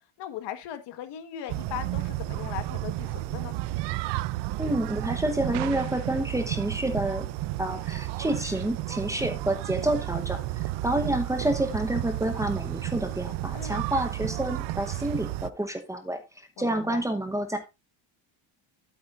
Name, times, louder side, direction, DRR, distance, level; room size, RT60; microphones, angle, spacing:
voice 1, 0.2-3.5 13.5-13.8 16.6-17.1, left 10 dB, 60° left, 1.6 m, -38 dB
sound 1, 1.5-15.5, right 16 dB, 60° right, 0.6 m, -32 dB
voice 2, 4.6-7.3 7.6-10.4 10.8-16.2 16.6-17.6, right 1 dB, 5° right, 1.0 m, -28 dB
12.5 x 8.4 x 2.5 m
cardioid pair, 180°, 47 cm